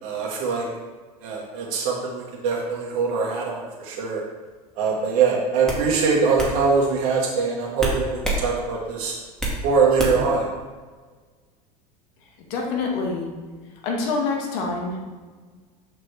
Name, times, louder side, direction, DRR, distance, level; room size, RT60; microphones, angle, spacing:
voice 1, 0.0-0.7 1.2-4.2 4.8-9.1 9.6-10.5, right 5 dB, 65° right, -2 dB, 1.4 m, -23 dB
sound 1, 4.9-5.1 5.7-5.8 6.4-6.5 7.8-8.4 8.8-9.6 10.0-10.3, right 1 dB, 5° left, 2.0 m, -26 dB
voice 2, 12.5-13.3 13.8-15.0, left 4 dB, 65° left, 0 dB, 1.6 m, -26 dB
6.4 x 5.9 x 3.3 m, 1.4 s
hypercardioid pair, 85°, 20 cm